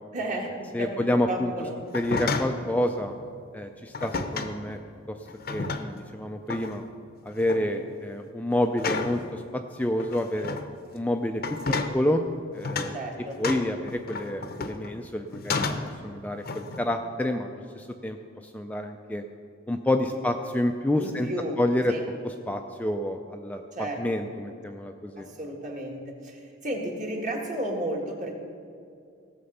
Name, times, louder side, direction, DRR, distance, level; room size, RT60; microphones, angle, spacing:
voice 1, 0.1-0.5 0.8-1.8 7.7-7.9 11.6-11.8 12.9-13.4 20.1-20.2 21.0-21.6 21.9-22.0 23.7-24.2 25.2-28.3, right 1 dB, 40° right, 0 dB, 1.8 m, -33 dB
voice 2, 0.7-1.5 1.9-3.1 3.5-4.8 5.1-5.2 5.5-6.8 7.2-10.6 10.9-12.2 12.5-12.9 13.4-15.6 16.0-18.2 18.5-19.2 19.7-21.3 21.6-21.9 22.5-25.3, left 1 dB, 10° left, 4 dB, 0.4 m, -28 dB
sound 1, 1.9-2.6 3.9-4.6 5.3-6.1 6.5-6.8 7.3-7.6 8.8-9.2 10.0-10.7 11.4-12.0 12.6-13.0 13.4-14.9 15.3-16.0 16.4-16.9, left 4 dB, 50° left, 0.7 m, -31 dB
16.5 x 6.8 x 5.5 m, 2.4 s
head